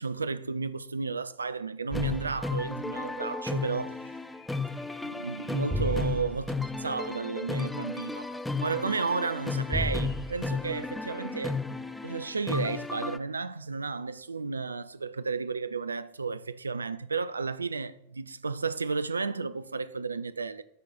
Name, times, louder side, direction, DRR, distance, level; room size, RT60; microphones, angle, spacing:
voice 1, 0.0-3.9 5.0-8.3 8.6-11.6 12.0-20.6, right 4 dB, 75° right, 0.4 m, -33 dB
sound 1, 1.9-13.2, left 3 dB, 5° left, 0.4 m, -33 dB
Bird, 3.8-7.6 9.2-12.7, left 3 dB, 50° left, 2.4 m, -60 dB
9.7 x 4.0 x 5.7 m
figure-of-eight pair, 90°, 0 cm